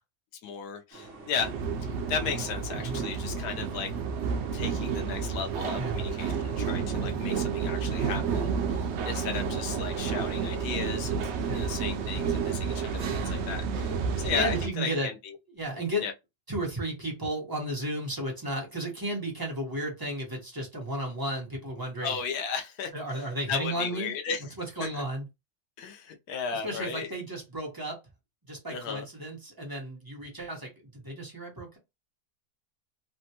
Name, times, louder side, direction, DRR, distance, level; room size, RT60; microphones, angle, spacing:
voice 1, 0.4-1.5 1.8-3.9 4.5-15.4 16.0-16.1 22.0-24.4 24.8-25.0 25.8-27.1 28.7-29.1, left 6 dB, 75° left, 1.2 m, -35 dB
sound 1, 0.9-6.7, right 2 dB, 50° right, 1.2 m, -48 dB
sound 2, 1.4-14.7, right 6 dB, 75° right, 0.6 m, -30 dB
voice 2, 2.7-3.0 5.7-6.1 7.0-7.2 8.0-8.3 11.5-11.7 13.1-13.4 14.3-15.1 15.5-16.1 16.5-22.1 22.9-24.1 24.6-25.3 26.5-28.0 28.5-31.8, right 1 dB, 15° right, 0.9 m, -34 dB
3.4 x 2.2 x 2.8 m
omnidirectional pair, 1.7 m